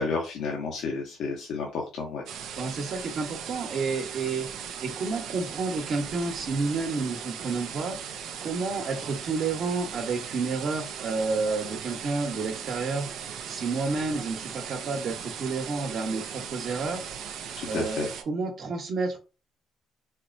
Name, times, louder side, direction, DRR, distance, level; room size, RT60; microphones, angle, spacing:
voice 1, 0.0-2.2 17.6-18.1, left 4 dB, 75° left, 0 dB, 0.8 m, -31 dB
sound 1, 2.3-18.2, right 8 dB, 80° right, 0.5 m, -38 dB
voice 2, 2.6-4.5 4.8-17.0 17.6-19.2, right 4 dB, 60° right, 3 dB, 1.1 m, -30 dB
4.3 x 2.1 x 2.5 m, 0.31 s
cardioid pair, 85°, 0 cm